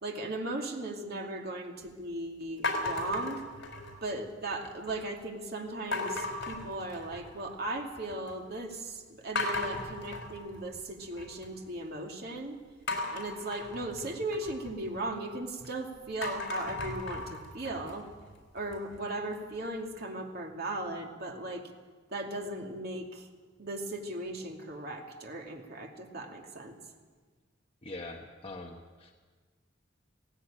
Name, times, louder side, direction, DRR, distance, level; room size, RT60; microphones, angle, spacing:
voice 1, 0.0-3.4 4.0-12.6 13.1-18.1 18.5-21.7 22.1-23.3 23.6-26.8, right 2 dB, 55° right, 2 dB, 2.6 m, -37 dB
sound 1, 2.6-4.1 4.5-5.0 5.9-7.4 7.8-8.3 8.7-8.8 9.4-11.5 12.9-15.7 16.1-19.0, left 2 dB, 65° left, 4.2 m, -36 dB
voice 2, 27.8-29.1, left 2 dB, 30° left, 0 dB, 1.3 m, -43 dB
17.5 x 17.0 x 8.9 m, 1.4 s
head